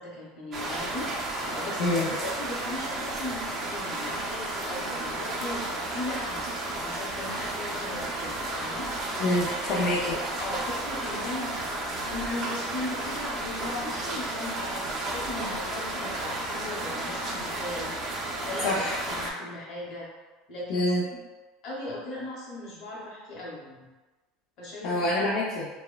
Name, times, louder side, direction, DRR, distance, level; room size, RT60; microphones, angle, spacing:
voice 1, 0.0-8.9 9.7-10.1 10.4-17.9 18.5-20.1 20.5-21.0 21.6-23.9 24.6-25.1, left 1 dB, 45° left, -5 dB, 0.9 m, -38 dB
sound 1, 0.5-19.3, right 2 dB, 25° right, 0.4 m, -33 dB
voice 2, 9.2-10.1 18.6-19.0 20.7-21.0 24.8-25.7, left 1 dB, 60° left, -6 dB, 0.4 m, -26 dB
3.0 x 2.1 x 2.2 m, 1.2 s
cardioid pair, 160°, 0 cm